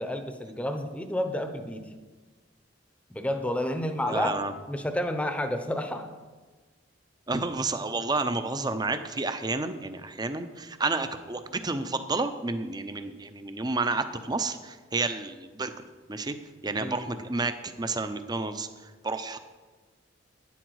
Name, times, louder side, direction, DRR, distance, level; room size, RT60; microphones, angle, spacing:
voice 1, 0.0-1.8 3.1-4.3 4.7-6.1 16.8-17.0, left 1 dB, 5° left, 7 dB, 0.8 m, -30 dB
voice 2, 4.1-4.5 7.3-15.7 16.1-16.3 16.6-19.4, right 3 dB, 20° right, 9 dB, 0.6 m, -30 dB
12.0 x 10.0 x 4.7 m, 1.3 s
head